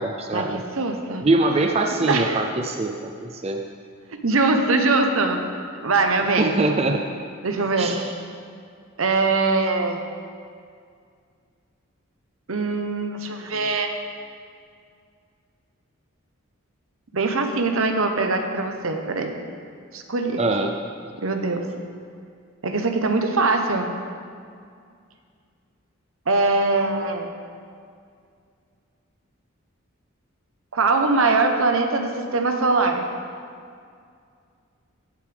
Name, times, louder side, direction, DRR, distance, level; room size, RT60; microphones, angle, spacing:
voice 1, 0.0-0.6 1.2-3.6 6.4-7.0 7.8-8.1 20.4-20.7, right 2 dB, 30° right, 3 dB, 0.5 m, -23 dB
voice 2, 0.8-1.3 2.0-2.5 4.2-5.4 5.8-6.5 7.4-8.0 9.0-10.0 12.5-14.0 17.1-19.4 19.9-20.4 21.2-21.6 22.6-23.9 26.3-27.3 30.7-33.0, right 3 dB, 75° right, 5 dB, 1.0 m, -22 dB
16.0 x 8.2 x 3.5 m, 2.3 s
head